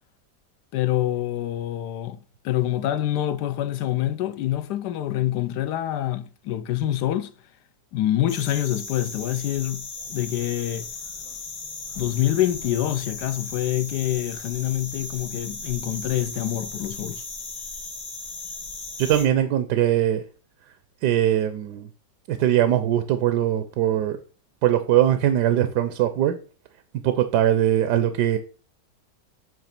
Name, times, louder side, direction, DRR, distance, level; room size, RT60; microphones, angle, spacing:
voice 1, 0.7-2.2 2.4-7.3 7.9-9.8 10.1-10.9 12.0-17.2, left 13 dB, 70° left, 1.2 m, -26 dB
sound 1, 8.3-19.2, left 3 dB, 50° left, 1.8 m, -36 dB
voice 2, 19.0-20.2 21.0-21.9 22.3-24.2 24.6-26.3 27.0-28.4, right 11 dB, 70° right, 1.2 m, -21 dB
8.8 x 3.1 x 5.9 m
omnidirectional pair, 1.9 m